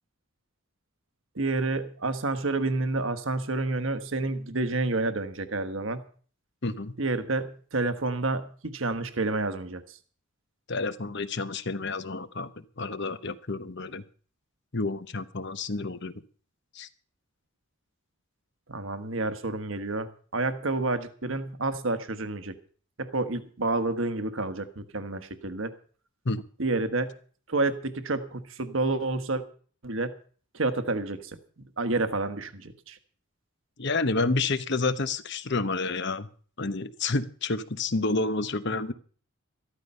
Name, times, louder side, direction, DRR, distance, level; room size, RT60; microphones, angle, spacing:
voice 1, 1.3-6.0 7.0-10.0 18.7-22.5 23.0-25.7 26.6-27.2 27.5-29.4 29.8-30.1 30.5-33.0, right 2 dB, 65° right, 10 dB, 1.4 m, -29 dB
voice 2, 6.6-6.9 10.7-12.5 12.8-14.0 14.7-16.1 16.7-16.9 26.2-26.4 33.8-36.3 36.6-38.9, left 3 dB, 55° left, 12 dB, 1.0 m, -29 dB
13.5 x 13.5 x 5.5 m, 0.43 s
head